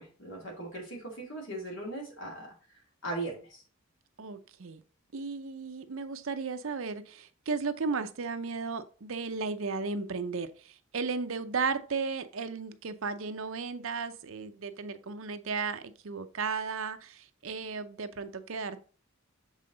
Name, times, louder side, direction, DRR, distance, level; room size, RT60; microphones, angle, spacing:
voice 1, 0.0-2.5 3.0-3.6, right 2 dB, 60° left, 2.4 m, -38 dB
voice 2, 4.2-4.8 5.1-18.8, right 4 dB, 70° right, 0.6 m, -35 dB
7.4 x 3.8 x 3.8 m
head